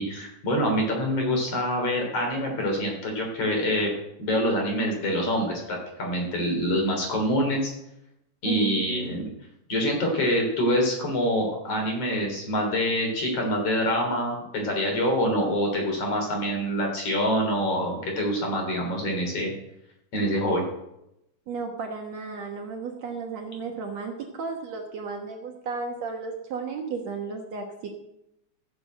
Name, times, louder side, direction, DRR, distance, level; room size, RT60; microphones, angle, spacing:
voice 1, 0.0-3.9 4.2-7.7 8.4-9.3 9.7-19.5 20.1-20.6, equal, 45° left, 1 dB, 4.4 m, -25 dB
voice 2, 8.5-9.1 21.5-27.9, right 5 dB, 60° right, 2 dB, 2.2 m, -34 dB
15.5 x 7.2 x 7.8 m, 0.83 s
omnidirectional pair, 3.9 m